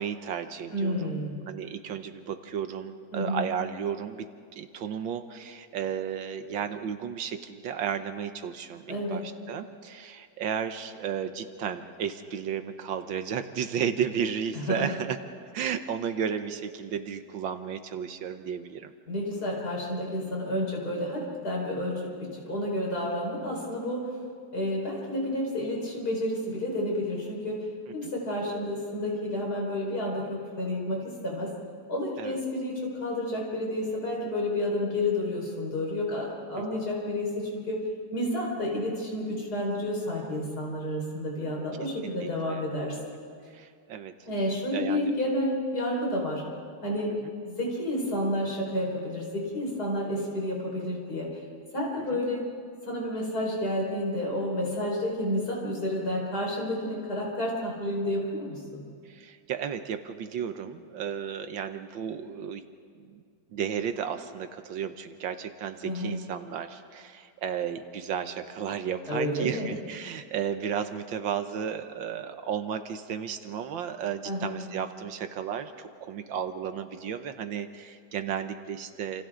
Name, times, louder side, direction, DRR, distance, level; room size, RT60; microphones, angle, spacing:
voice 1, 0.0-1.2 1.5-4.3 4.6-15.2 15.5-18.9 28.0-28.1 32.2-32.4 36.6-36.8 42.0-42.6 43.5-44.1 44.7-45.1 47.2-47.3 52.1-52.2 59.1-62.6 63.0-63.2 63.5-79.2, right 8 dB, 75° right, 9 dB, 1.7 m, -33 dB
voice 2, 0.7-1.4 3.1-3.4 8.9-9.2 14.5-14.9 19.1-24.1 24.5-27.6 27.9-31.5 31.9-37.8 38.1-43.0 44.3-46.4 46.8-47.1 47.4-51.3 51.7-52.5 52.9-58.8 65.8-66.2 69.1-69.7 74.3-74.6, left 1 dB, 50° left, -2 dB, 5.4 m, -30 dB
28.0 x 28.0 x 3.8 m, 2.2 s
omnidirectional pair, 2.2 m